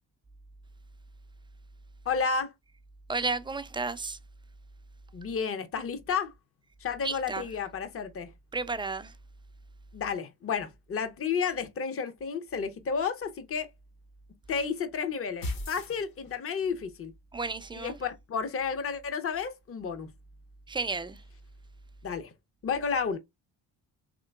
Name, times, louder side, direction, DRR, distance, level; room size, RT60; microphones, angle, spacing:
voice 1, 2.1-2.5 5.1-6.3 6.8-8.3 9.9-13.7 14.5-17.1 17.7-20.1 22.0-22.3 22.6-23.2, left 6 dB, 35° left, 0.7 m, -31 dB
voice 2, 3.1-4.2 7.0-7.4 8.5-9.1 17.3-17.9 20.7-21.2, right 4 dB, 15° right, 0.3 m, -32 dB
sound 1, 15.4-16.7, left 1 dB, 55° left, 1.1 m, -36 dB
3.7 x 2.9 x 2.3 m
cardioid pair, 90°, 41 cm